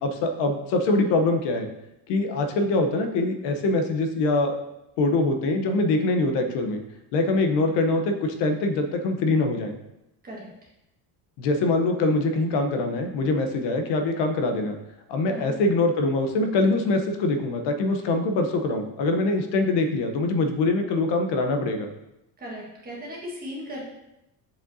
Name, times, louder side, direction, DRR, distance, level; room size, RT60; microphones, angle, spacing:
voice 1, 0.0-1.7 2.1-4.6 5.0-6.8 7.1-9.8 11.4-14.8 15.1-21.9, left 2 dB, 80° left, 5 dB, 0.9 m, -23 dB
voice 2, 10.2-10.7 15.3-15.6 22.4-23.8, equal, 20° right, -3 dB, 1.4 m, -37 dB
7.3 x 5.3 x 2.7 m, 0.89 s
cardioid pair, 170°, 41 cm